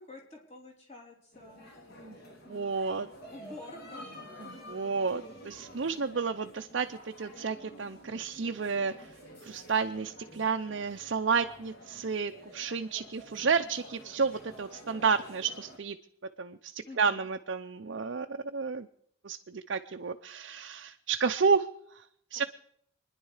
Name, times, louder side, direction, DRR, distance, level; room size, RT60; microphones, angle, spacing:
voice 1, 0.0-1.7 2.5-2.8 3.3-4.1 16.9-17.3 22.3-22.5, left 2 dB, 30° left, 0 dB, 3.6 m, -49 dB
sound 1, 1.3-15.8, equal, 50° left, 2.9 m, -50 dB
voice 2, 2.5-3.1 4.4-9.1 9.4-16.0 16.4-18.9 19.2-21.7 21.9-22.1 22.3-22.4, right 5 dB, 55° right, 5 dB, 0.6 m, -31 dB
26.0 x 10.5 x 4.9 m, 0.70 s
head